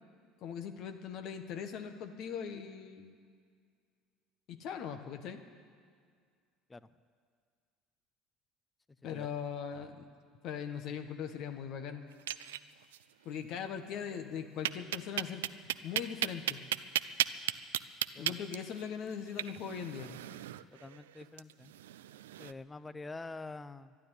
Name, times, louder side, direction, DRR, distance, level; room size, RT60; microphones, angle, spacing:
voice 1, 0.4-3.2 4.5-5.4 9.0-10.1 10.4-12.0 13.2-15.4 15.8-16.6 18.2-20.1, left 7 dB, 60° left, 7 dB, 1.3 m, -40 dB
sound 1, 12.1-13.0 13.3-13.4 13.7-13.8 14.6-22.5, right 13 dB, 80° right, 0.4 m, -36 dB
voice 2, 20.7-21.7 22.4-24.0, left 3 dB, 20° left, 15 dB, 0.7 m, -46 dB
12.0 x 11.5 x 9.8 m, 2.1 s
hypercardioid pair, 70°, 0 cm